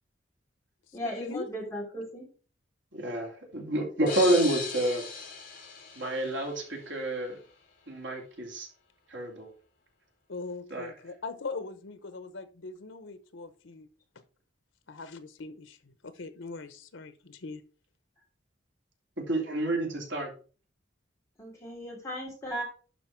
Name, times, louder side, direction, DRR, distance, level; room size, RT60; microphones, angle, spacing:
voice 1, 0.9-2.2 21.4-22.6, equal, 15° left, -4 dB, 3.3 m, -36 dB
voice 2, 2.9-5.0 5.9-7.4 7.9-8.7 9.1-9.5 10.7-10.9 19.2-20.3, right 1 dB, 80° right, 0 dB, 2.8 m, -29 dB
sound 1, 4.1-6.8, left 4 dB, 45° left, 2.7 m, -38 dB
voice 3, 10.3-13.9 14.9-17.6, left 3 dB, 80° left, 11 dB, 0.9 m, -41 dB
11.5 x 4.4 x 4.5 m, 0.39 s
head